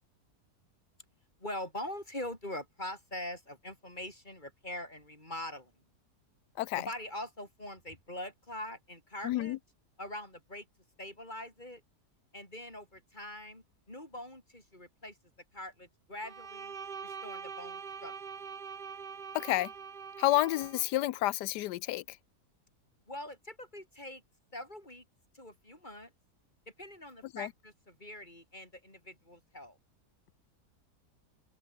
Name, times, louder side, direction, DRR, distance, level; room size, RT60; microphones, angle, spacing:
voice 1, 1.4-5.7 6.8-9.6 10.0-10.7 11.0-11.8 12.3-15.2 15.5-16.7 17.0-18.1 23.1-24.2 24.5-25.1 25.3-26.1 26.7-29.8, left 1 dB, 25° left, 8.0 m, -43 dB
voice 2, 9.2-9.6 19.3-19.7 20.2-22.2 27.3-27.5, left 15 dB, 90° left, 1.2 m, -30 dB
Bowed string instrument, 16.2-20.9, right 6 dB, 35° right, 1.0 m, -44 dB
open air
omnidirectional pair, 1.7 m